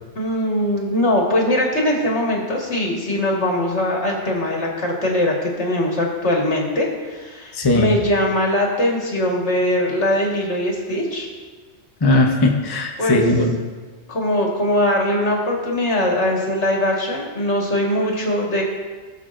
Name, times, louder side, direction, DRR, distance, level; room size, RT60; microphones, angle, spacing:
voice 1, 0.2-11.3 13.0-13.2 14.1-18.6, left 1 dB, 65° left, -1 dB, 2.0 m, -21 dB
voice 2, 7.5-8.0 12.0-13.6, left 2 dB, 25° left, 1 dB, 0.7 m, -18 dB
19.0 x 6.7 x 2.6 m, 1.4 s
omnidirectional pair, 1.2 m